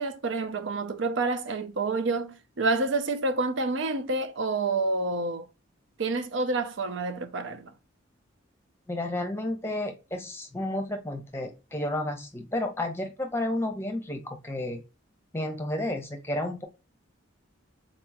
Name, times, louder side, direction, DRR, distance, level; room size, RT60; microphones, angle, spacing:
voice 1, 0.0-5.5 6.0-7.7, right 3 dB, 65° right, 0.5 m, -28 dB
voice 2, 8.9-14.8 15.3-16.6, left 1 dB, 10° left, 0.8 m, -31 dB
4.2 x 3.0 x 2.3 m
head